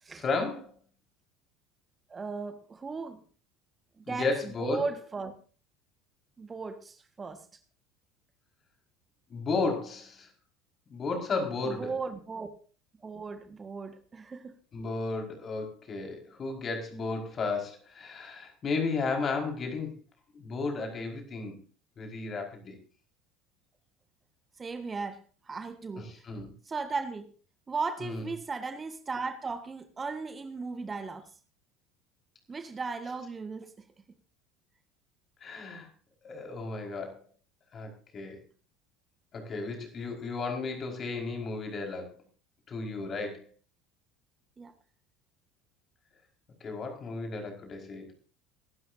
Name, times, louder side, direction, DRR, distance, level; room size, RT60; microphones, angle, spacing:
voice 1, 0.2-0.7 4.1-4.8 9.3-10.3 10.9-11.9 14.7-20.0 20.3-21.6 22.0-22.8 26.0-26.5 28.0-28.3 35.4-35.9 36.2-37.2 37.7-38.4 39.3-42.1 42.7-43.5 46.6-48.1, left 3 dB, 35° left, 5.2 m, -33 dB
voice 2, 2.1-3.2 4.0-5.3 6.4-7.5 11.6-12.5 13.0-14.5 24.6-26.1 26.7-27.3 27.7-31.3 32.5-33.7 44.6-44.7, right 4 dB, 25° right, 1.6 m, -36 dB
24.0 x 12.5 x 2.8 m
figure-of-eight pair, 70°, 0 cm